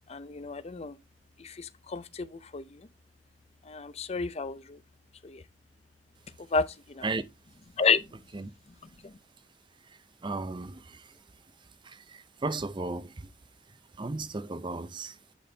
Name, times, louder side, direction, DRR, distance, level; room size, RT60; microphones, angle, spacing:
voice 1, 0.1-0.9 1.4-2.8 3.7-4.8 5.2-5.4 6.5-7.1 7.8-8.0 9.0-9.1, left 5 dB, 35° left, 0.6 m, -31 dB
voice 2, 10.2-10.8 12.4-13.1 14.0-15.1, right 3 dB, 25° right, 0.5 m, -33 dB
10.0 x 4.2 x 3.3 m
head